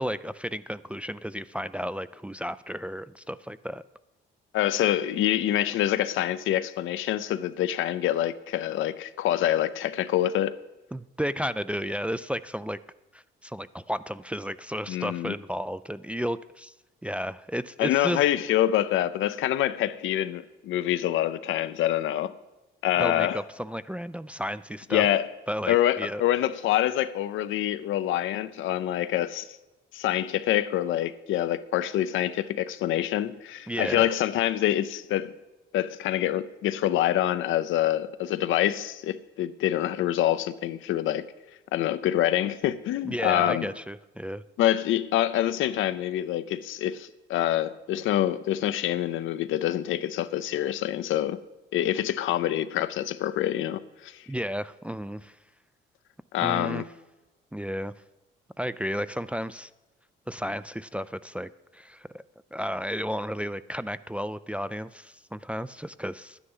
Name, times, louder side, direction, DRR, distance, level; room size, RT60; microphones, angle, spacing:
voice 1, 0.0-3.8 10.9-12.8 13.1-16.7 17.0-18.2 23.0-25.1 25.5-26.2 33.7-34.1 43.0-44.4 54.3-55.4 56.4-56.8 57.5-57.9 58.6-59.7 60.3-62.2 62.5-66.4, equal, 5° right, 0.3 m, -33 dB
voice 2, 4.5-10.6 14.9-15.3 17.8-22.3 22.8-23.4 24.9-25.3 25.7-29.5 29.9-35.3 35.7-41.3 41.7-43.7 44.6-51.4 51.7-54.2 56.3-56.8, left 12 dB, 80° left, 0.6 m, -26 dB
11.5 x 9.9 x 5.5 m
cardioid pair, 90°, 20 cm